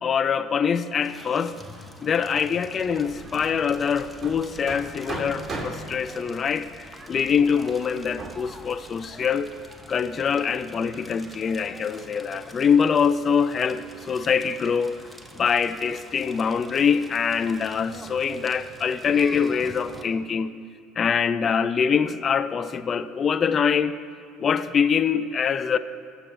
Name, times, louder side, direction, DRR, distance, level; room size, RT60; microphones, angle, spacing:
voice 1, 0.0-1.6 2.0-9.5 9.9-15.0 15.3-20.5 21.0-23.9 24.4-25.8, left 6 dB, 40° left, 12 dB, 0.5 m, -24 dB
Crackle, 1.0-20.0, equal, 5° right, 1.2 m, -46 dB
Hammer, 2.8-9.7, right 2 dB, 30° right, 2.5 m, -39 dB
20.0 x 6.8 x 3.8 m, 2.1 s
hypercardioid pair, 70°, 0 cm